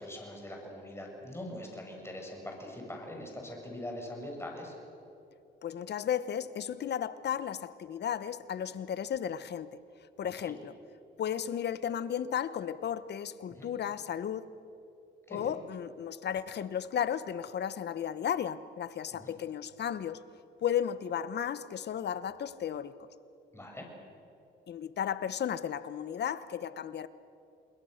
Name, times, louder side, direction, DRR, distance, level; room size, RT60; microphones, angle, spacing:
voice 1, 0.0-4.7 10.3-10.6 13.5-13.7 15.3-15.6 19.1-19.3 23.5-23.9, left 1 dB, 10° left, 1 dB, 6.5 m, -42 dB
voice 2, 5.6-9.8 10.2-10.7 11.2-14.5 15.3-20.2 20.6-23.1 24.7-27.1, left 9 dB, 60° left, 15 dB, 1.1 m, -34 dB
28.5 x 21.5 x 6.6 m, 2.8 s
cardioid pair, 90°, 20 cm